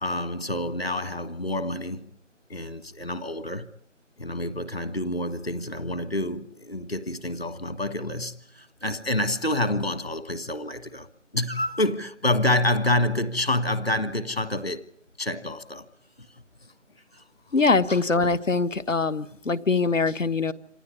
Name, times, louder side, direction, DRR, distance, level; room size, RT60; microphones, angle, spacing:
voice 1, 0.0-2.0 2.5-3.7 4.2-11.1 11.3-14.9 15.2-15.9 16.6-16.7 17.1-17.2, left 1 dB, 50° left, 1.6 m, -28 dB
voice 2, 17.5-20.5, left 4 dB, 80° left, 1.4 m, -23 dB
26.5 x 16.0 x 9.7 m
figure-of-eight pair, 175°, 38 cm